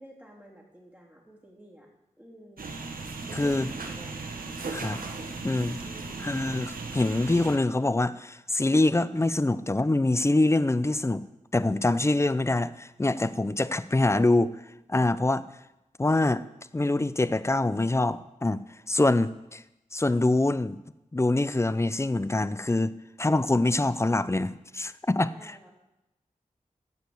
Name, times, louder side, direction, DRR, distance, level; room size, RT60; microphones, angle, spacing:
voice 1, 0.0-1.9 2.2-2.7 3.3-4.3 5.8-6.3 25.3-25.7, right 1 dB, 10° right, -2 dB, 3.2 m, -50 dB
sound 1, 2.6-7.6, right 3 dB, 90° right, 1.2 m, -37 dB
voice 2, 3.4-3.7 4.7-5.0 5.4-5.8 6.2-11.3 11.5-14.6 14.9-15.4 16.0-16.4 16.7-19.6 19.9-20.8 21.1-25.7, left 2 dB, 20° left, 15 dB, 0.5 m, -25 dB
15.0 x 5.2 x 7.8 m, 0.92 s
wide cardioid pair, 65°, 14 cm